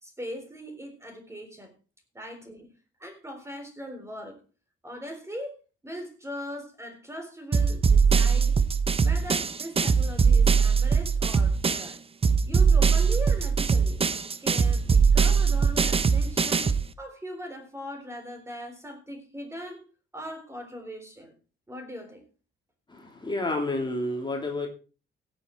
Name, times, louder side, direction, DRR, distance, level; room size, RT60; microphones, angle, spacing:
voice 1, 0.0-1.7 2.1-2.7 3.0-4.4 4.8-5.5 5.8-8.6 9.0-12.0 12.5-19.8 20.1-21.3 21.7-22.2, equal, 15° right, 3.8 m, -40 dB
sound 1, 7.5-11.9 12.2-16.9, right 5 dB, 30° right, 0.8 m, -21 dB
voice 2, 22.9-24.7, left 2 dB, 25° left, 2.9 m, -30 dB
16.5 x 7.4 x 4.5 m
cardioid pair, 90°, 20 cm